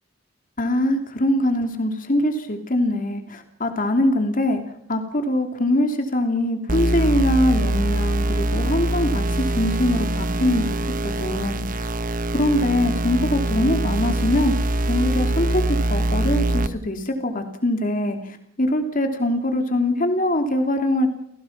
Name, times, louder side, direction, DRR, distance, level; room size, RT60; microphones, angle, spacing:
voice 1, 0.6-4.6 4.9-11.8 12.3-21.1, left 1 dB, 40° left, 5 dB, 2.9 m, -23 dB
sound 1, 6.7-16.7, right 1 dB, 45° right, 1.2 m, -23 dB
30.0 x 17.5 x 6.0 m, 0.72 s
head